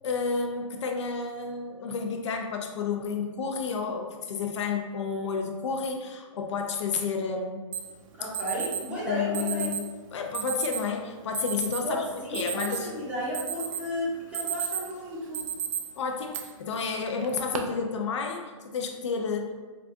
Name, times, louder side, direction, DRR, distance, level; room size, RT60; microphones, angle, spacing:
voice 1, 0.0-7.6 9.1-9.8 10.1-12.0 12.3-12.9 16.0-19.7, left 5 dB, 60° left, 3 dB, 0.5 m, -31 dB
Alarm, 7.7-7.8 8.3-8.8 9.3-9.8 10.3-10.8 11.3-11.8 12.2-13.0 13.3-13.9 14.2-14.9 15.3-15.8 16.3-16.4 17.2-17.6, right 9 dB, 80° right, 0.5 m, -32 dB
voice 2, 8.2-9.8 11.8-15.5, equal, 10° right, -8 dB, 0.6 m, -33 dB
4.7 x 2.3 x 2.5 m, 1.4 s
hypercardioid pair, 165°, 17 cm